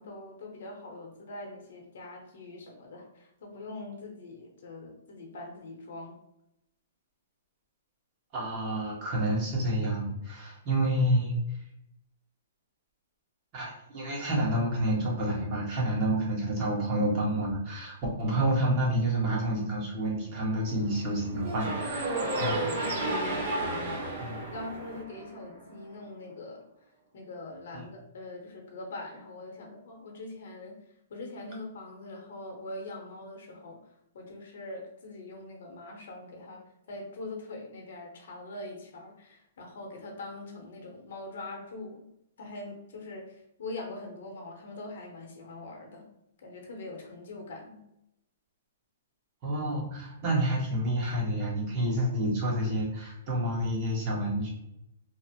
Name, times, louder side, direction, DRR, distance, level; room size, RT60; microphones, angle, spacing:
voice 1, 0.0-6.2 23.0-24.0 24.5-26.6 27.1-30.7 31.1-36.6 36.9-42.1 42.4-46.1 46.4-47.8, left 2 dB, 65° left, 1 dB, 0.7 m, -43 dB
voice 2, 8.3-11.6 13.5-22.6 24.2-24.4 27.7-27.8 49.4-54.5, right 1 dB, 35° right, -4 dB, 1.1 m, -29 dB
sound 1, 20.2-25.0, right 5 dB, 55° right, 0.4 m, -45 dB
sound 2, 21.4-25.6, right 1 dB, 70° right, 1.5 m, -32 dB
2.9 x 2.0 x 2.7 m, 0.84 s
hypercardioid pair, 145°, 0 cm